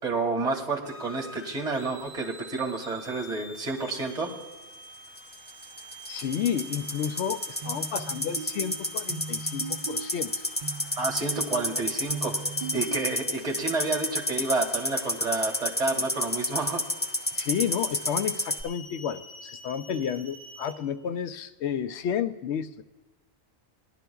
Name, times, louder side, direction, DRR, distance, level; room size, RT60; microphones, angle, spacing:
voice 1, 0.0-4.3 11.0-12.4 12.7-16.8, right 3 dB, 35° right, 0 dB, 2.1 m, -30 dB
sound 1, 0.8-20.7, equal, 40° left, 4.7 m, -47 dB
sound 2, 5.2-18.6, left 1 dB, 15° left, 0.4 m, -29 dB
voice 2, 6.1-10.5 17.3-22.8, left 8 dB, 75° left, 10 dB, 0.8 m, -31 dB
sound 3, 7.6-13.6, right 5 dB, 55° right, 0.5 m, -40 dB
19.5 x 11.0 x 2.3 m, 1.2 s
omnidirectional pair, 1.2 m